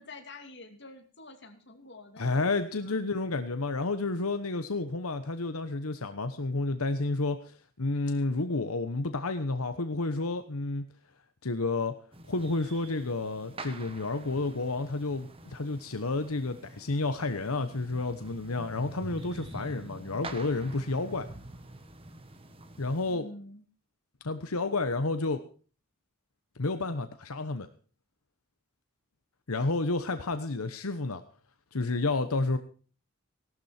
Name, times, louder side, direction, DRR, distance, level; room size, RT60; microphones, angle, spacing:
voice 1, 0.0-3.0 23.1-23.6, left 2 dB, 55° left, 5 dB, 2.7 m, -48 dB
voice 2, 2.2-10.8 11.4-11.9 12.3-21.3 22.8-23.2 24.2-25.4 26.6-27.7 29.5-31.2 31.7-32.6, left 3 dB, 90° left, 9 dB, 1.1 m, -30 dB
sound 1, 12.1-23.2, right 2 dB, 25° right, 1.5 m, -46 dB
17.0 x 12.5 x 4.4 m, 0.39 s
head